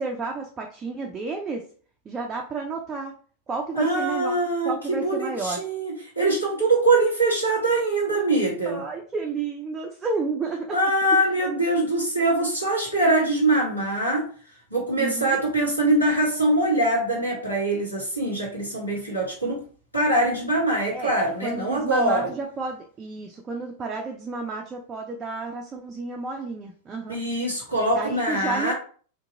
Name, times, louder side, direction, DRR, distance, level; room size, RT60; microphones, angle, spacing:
voice 1, 0.0-1.6 2.1-3.1 3.5-4.4 4.6-5.6 8.7-10.8 11.1-11.2 15.0-15.4 20.9-21.1 21.4-27.2 28.0-28.7, right 4 dB, 20° right, 1 dB, 0.4 m, -31 dB
voice 2, 3.7-8.8 10.7-14.2 14.7-19.6 19.9-22.3 27.1-28.7, right 2 dB, 85° left, -4 dB, 1.2 m, -23 dB
2.7 x 2.5 x 2.5 m, 0.43 s
figure-of-eight pair, 90°, 0 cm